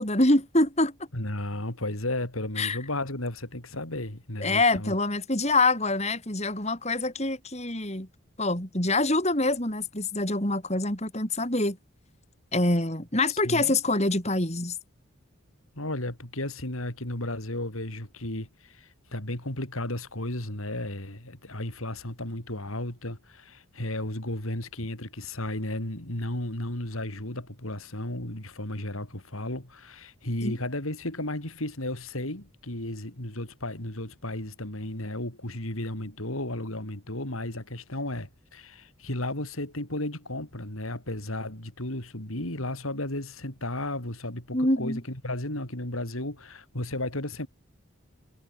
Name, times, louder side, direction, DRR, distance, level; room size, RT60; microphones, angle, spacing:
voice 1, 0.0-1.0 2.6-2.8 4.4-8.1 8.4-11.8 12.5-14.8 30.4-30.6 44.5-45.0, left 2 dB, 30° left, 5.4 m, -25 dB
voice 2, 1.1-4.9 13.3-13.7 15.7-47.5, left 1 dB, 80° left, 5.1 m, -34 dB
head